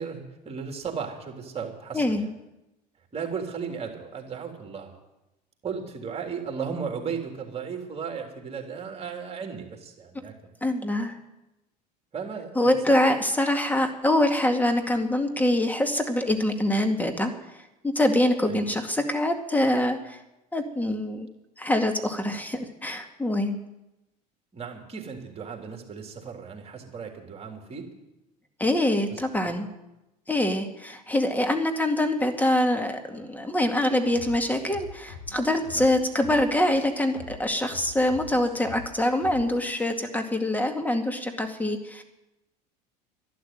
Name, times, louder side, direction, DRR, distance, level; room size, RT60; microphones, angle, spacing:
voice 1, 0.0-2.3 3.1-5.0 5.6-10.3 11.0-11.1 12.1-13.1 18.4-18.7 24.5-27.9 29.1-29.6 35.7-36.0, right 6 dB, 30° right, 3 dB, 3.7 m, -35 dB
voice 2, 1.9-2.3 10.6-11.2 12.6-20.2 20.5-21.3 21.6-23.6 28.6-29.7 30.3-42.0, left 1 dB, 10° left, 6 dB, 2.2 m, -25 dB
sound 1, 34.1-36.5 36.8-39.5 39.8-40.0, left 5 dB, 80° left, 6.4 m, -44 dB
12.0 x 11.5 x 9.4 m, 0.95 s
hypercardioid pair, 80°, 21 cm